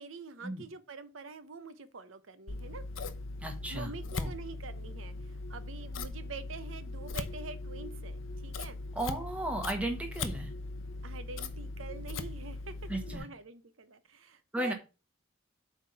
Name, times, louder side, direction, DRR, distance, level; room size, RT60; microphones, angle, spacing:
voice 1, 0.0-2.8 3.7-8.8 11.0-14.7, right 4 dB, 85° right, 0.8 m, -46 dB
Scissors, 2.5-13.2, left 3 dB, 80° left, 0.8 m, -39 dB
voice 2, 3.4-3.9 4.2-4.3 8.9-10.5 12.9-13.3 14.5-14.7, right 1 dB, 5° right, 1.5 m, -34 dB
8.0 x 3.7 x 5.8 m
head